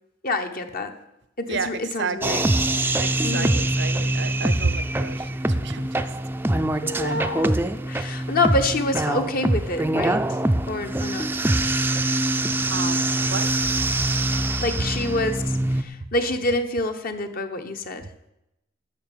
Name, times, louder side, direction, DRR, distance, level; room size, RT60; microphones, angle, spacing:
voice 1, 0.2-1.0 1.4-2.5 3.2-3.6 6.8-7.6 7.9-10.2 10.7-11.3 14.6-18.1, left 2 dB, 50° left, 6 dB, 1.0 m, -27 dB
voice 2, 1.5-2.4 3.0-5.9 12.7-13.0 13.3-13.5, right 4 dB, 60° right, 15 dB, 0.7 m, -31 dB
sound 1, 2.2-15.8, right 1 dB, 10° right, 0.5 m, -24 dB
11.5 x 6.4 x 9.1 m, 0.87 s
head